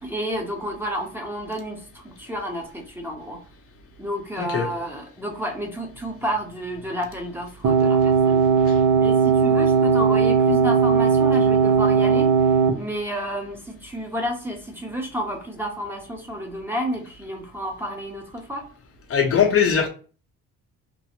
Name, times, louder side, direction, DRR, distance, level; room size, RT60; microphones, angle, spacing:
voice 1, 0.0-3.4 4.0-8.4 8.9-12.5 12.7-18.6, equal, 5° right, 0.9 m, -30 dB
voice 2, 4.4-4.7 8.6-8.7 19.1-19.9, left 7 dB, 50° left, 0.7 m, -20 dB
sound 1, 7.6-12.7, right 6 dB, 70° right, 0.7 m, -18 dB
3.0 x 2.1 x 2.9 m
cardioid pair, 90°, 30 cm